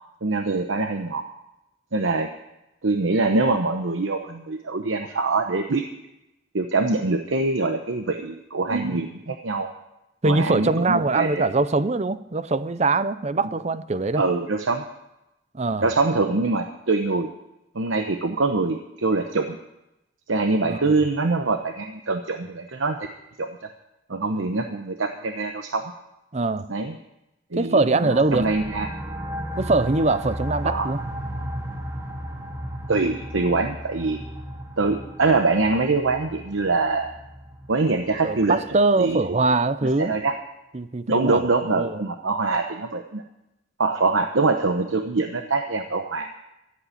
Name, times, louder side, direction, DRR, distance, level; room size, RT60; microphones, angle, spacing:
voice 1, 0.2-1.2 1.9-2.3 2.8-5.8 6.5-9.7 10.2-11.4 14.2-14.8 15.8-17.3 17.7-19.6 20.3-23.0 23.4-23.5 24.1-25.8 26.7-26.9 27.5-29.0 30.6-30.9 32.9-34.2 34.8-37.1 37.7-38.6 39.0-39.4 40.0-40.3 41.1-43.2 43.8-46.3, right 3 dB, 85° right, 5 dB, 1.0 m, -24 dB
voice 2, 10.2-14.2 15.5-15.9 20.6-20.8 26.3-26.7 27.6-28.5 29.6-31.0 38.2-40.2 40.7-42.0, right 3 dB, 35° right, 14 dB, 0.6 m, -22 dB
sound 1, 28.1-39.5, equal, 15° right, 1.6 m, -35 dB
14.5 x 8.6 x 8.4 m, 0.90 s
head